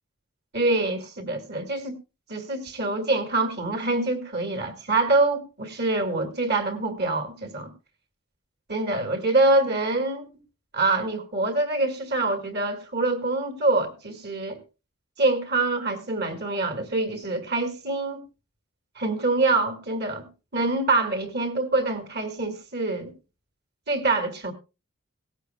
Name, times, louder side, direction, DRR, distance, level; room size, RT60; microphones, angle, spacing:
voice 1, 0.5-2.0 2.3-7.7 8.7-10.3 10.7-14.6 15.2-18.2 19.0-20.3 20.5-23.1 23.9-24.5, right 2 dB, 45° right, 1.9 m, -25 dB
18.0 x 14.5 x 2.2 m
head